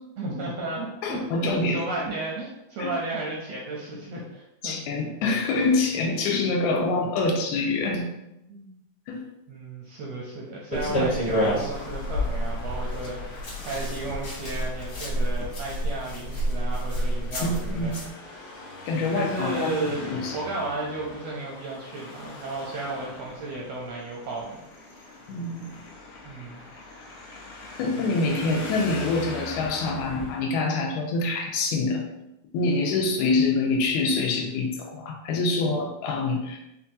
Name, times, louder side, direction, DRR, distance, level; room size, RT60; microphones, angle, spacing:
voice 1, 0.2-4.8 8.5-8.8 9.5-17.9 18.3-18.6 19.1-24.6 24.9-25.2 26.2-26.6, right 2 dB, 80° right, -3 dB, 1.5 m, -34 dB
voice 2, 1.0-1.8 2.8-2.9 4.6-8.1 9.1-9.2 10.9-11.1 17.4-18.0 18.9-20.4 25.3-25.6 27.8-32.0 32.5-36.6, left 3 dB, 85° left, 2 dB, 2.0 m, -25 dB
sound 1, 10.7-18.1, equal, 50° left, 1.2 m, -29 dB
Traffic noise roadway noise, 11.7-30.4, left 2 dB, 70° left, 1.5 m, -42 dB
5.7 x 2.3 x 2.6 m, 0.88 s
omnidirectional pair, 3.4 m